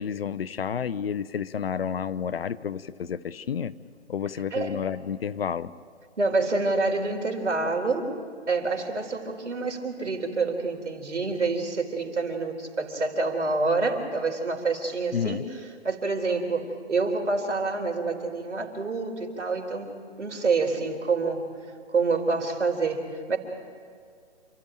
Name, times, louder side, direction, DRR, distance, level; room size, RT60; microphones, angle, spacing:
voice 1, 0.0-3.7 4.1-5.7 15.1-15.5, left 7 dB, 60° left, 16 dB, 0.9 m, -30 dB
voice 2, 6.2-8.1 8.5-15.4 15.8-21.4 21.9-23.4, right 3 dB, 85° right, 4 dB, 4.0 m, -27 dB
28.5 x 14.0 x 9.1 m, 2.1 s
hypercardioid pair, 155°, 34 cm